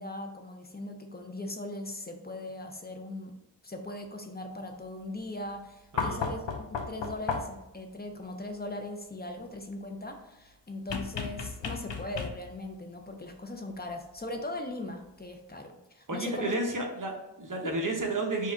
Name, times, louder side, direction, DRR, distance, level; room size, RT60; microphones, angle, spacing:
voice 1, 0.0-3.3 3.6-16.5 17.6-17.7, left 1 dB, 20° left, 4 dB, 0.6 m, -39 dB
voice 2, 5.9-6.2 16.1-18.5, right 2 dB, 45° right, 1 dB, 0.9 m, -32 dB
sound 1, 6.0-7.7 10.9-12.7 14.2-14.3, left 5 dB, 80° left, 0.6 m, -34 dB
4.6 x 2.4 x 4.5 m, 0.90 s
wide cardioid pair, 75°, 43 cm